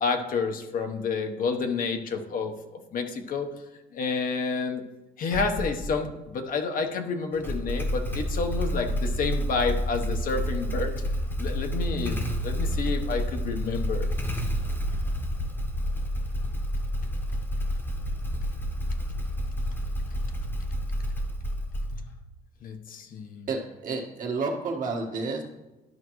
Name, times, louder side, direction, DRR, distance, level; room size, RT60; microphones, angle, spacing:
voice 1, 0.0-3.5 3.9-4.8 5.2-10.9 11.4-14.1 22.6-23.5, left 4 dB, 55° left, 5 dB, 0.9 m, -29 dB
Motorcycle / Engine starting, 5.3-6.0 7.3-22.2, equal, 10° left, 1.0 m, -29 dB
voice 2, 23.5-25.4, right 3 dB, 50° right, 1 dB, 1.5 m, -30 dB
12.0 x 5.2 x 3.1 m, 1.0 s
cardioid pair, 110°, 17 cm